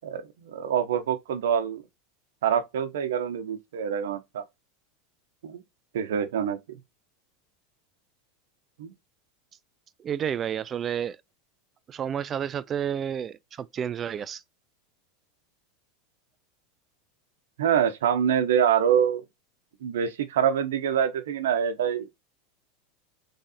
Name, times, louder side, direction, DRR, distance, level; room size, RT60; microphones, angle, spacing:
voice 1, 0.0-1.8 2.4-4.4 5.4-5.6 5.9-6.6 8.8-8.9 17.6-19.2 19.8-22.1, right 8 dB, 85° right, 0.9 m, -25 dB
voice 2, 10.0-11.2 11.9-14.4, right 8 dB, 30° right, 0.3 m, -30 dB
3.6 x 3.2 x 4.1 m
supercardioid pair, 125°, 0 cm